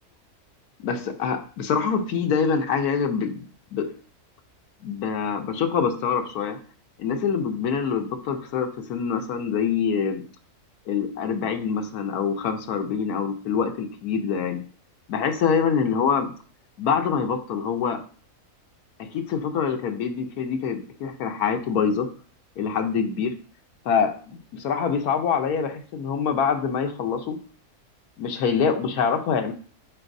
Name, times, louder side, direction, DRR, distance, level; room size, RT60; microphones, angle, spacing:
voice 1, 0.8-3.4 3.7-3.9 4.8-6.6 7.0-10.3 10.9-14.6 15.1-16.3 16.8-18.0 19.0-22.1 22.6-23.4 23.8-27.4 28.2-29.5, left 6 dB, 90° left, 6 dB, 1.3 m, -25 dB
9.0 x 4.1 x 2.6 m, 0.40 s
omnidirectional pair, 1.5 m